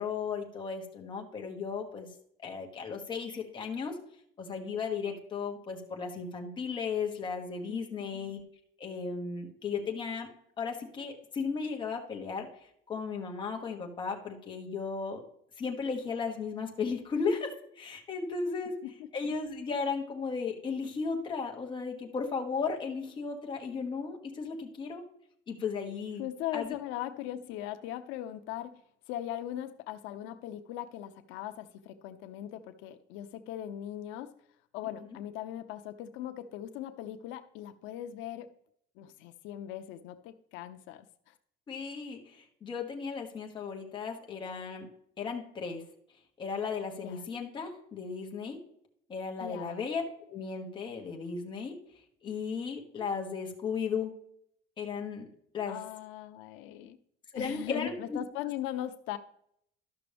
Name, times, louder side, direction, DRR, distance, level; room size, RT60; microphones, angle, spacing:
voice 1, 0.0-2.1 2.4-4.0 4.4-8.4 8.8-10.3 10.6-15.2 15.6-18.8 19.1-25.0 25.5-26.2 26.5-26.7 41.7-44.9 45.2-45.8 46.4-48.6 49.1-50.0 50.3-51.8 52.2-54.1 54.8-55.3 55.5-55.8 57.3-58.2, left 5 dB, 25° left, 1 dB, 1.2 m, -35 dB
voice 2, 7.7-8.3 18.8-18.9 26.2-28.8 29.1-34.3 34.7-38.5 39.0-41.3 47.0-47.3 49.4-49.9 55.7-57.0 57.3-59.2, left 12 dB, 85° left, 10 dB, 0.6 m, -39 dB
12.5 x 6.0 x 3.4 m, 0.70 s
cardioid pair, 175°, 19 cm